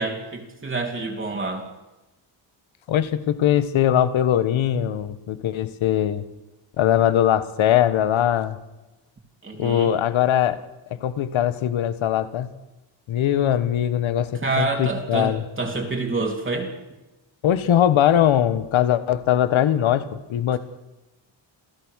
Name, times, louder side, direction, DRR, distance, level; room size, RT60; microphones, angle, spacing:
voice 1, 0.0-1.7 9.4-9.9 14.4-16.7 20.5-20.6, right 3 dB, 25° right, 1 dB, 3.2 m, -27 dB
voice 2, 2.9-6.2 6.8-8.6 9.6-10.6 11.0-12.5 13.1-15.4 17.4-20.6, left 10 dB, 80° left, 14 dB, 1.7 m, -21 dB
28.0 x 17.0 x 6.6 m, 1.0 s
wide cardioid pair, 150°, 46 cm